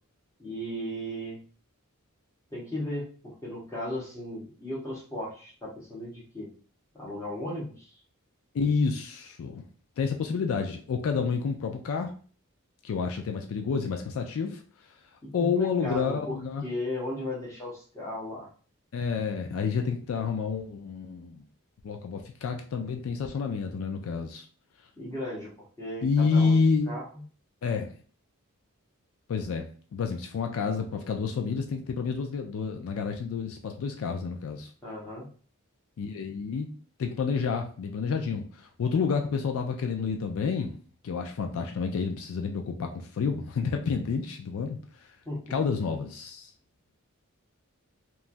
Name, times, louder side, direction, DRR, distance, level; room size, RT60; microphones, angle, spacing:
voice 1, 0.4-1.4 2.5-6.5 6.9-7.9 15.2-16.4 16.6-18.5 25.0-25.5 25.8-26.6 26.9-27.0 34.8-35.3 45.2-45.6, left 1 dB, 15° left, -5 dB, 0.9 m, -36 dB
voice 2, 8.5-9.6 10.0-12.1 12.8-14.6 15.3-16.6 18.9-21.4 21.8-24.5 26.0-26.9 27.6-27.9 29.3-29.7 29.9-34.7 36.0-36.7 37.0-40.8 41.0-44.8 45.5-46.5, left 5 dB, 70° left, 3 dB, 0.4 m, -29 dB
3.0 x 2.3 x 2.5 m, 0.42 s
head